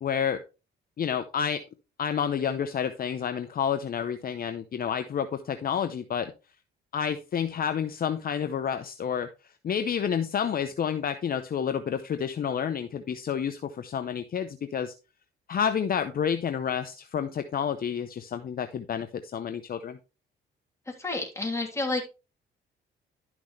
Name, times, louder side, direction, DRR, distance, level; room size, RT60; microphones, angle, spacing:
voice 1, 0.0-0.4 1.0-1.6 2.0-6.3 6.9-9.3 9.6-14.9 15.5-20.0, left 8 dB, 45° left, 9 dB, 0.8 m, -29 dB
voice 2, 20.9-22.0, left 2 dB, 15° left, 0 dB, 3.1 m, -30 dB
11.5 x 6.1 x 3.2 m, 0.30 s
cardioid pair, 90°, 20 cm